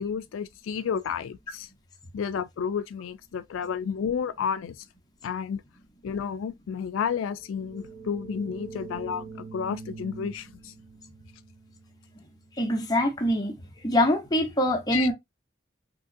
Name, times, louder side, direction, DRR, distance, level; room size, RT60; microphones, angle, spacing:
voice 1, 0.0-1.7 2.1-4.8 5.2-5.6 6.0-10.7 14.9-15.1, left 7 dB, 90° left, 0.3 m, -31 dB
sound 1, 7.3-12.9, right 4 dB, 45° right, 0.9 m, -44 dB
voice 2, 12.6-13.5 13.8-15.1, left 1 dB, 20° left, 0.7 m, -24 dB
3.6 x 2.9 x 2.5 m
head